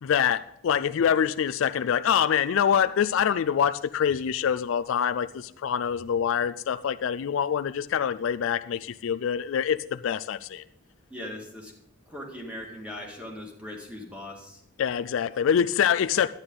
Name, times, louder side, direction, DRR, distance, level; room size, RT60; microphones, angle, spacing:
voice 1, 0.0-10.6 14.8-16.3, left 8 dB, 60° left, 0.3 m, -25 dB
voice 2, 11.1-11.7 12.1-14.6, left 1 dB, 5° right, 2.0 m, -39 dB
11.5 x 9.7 x 3.8 m
head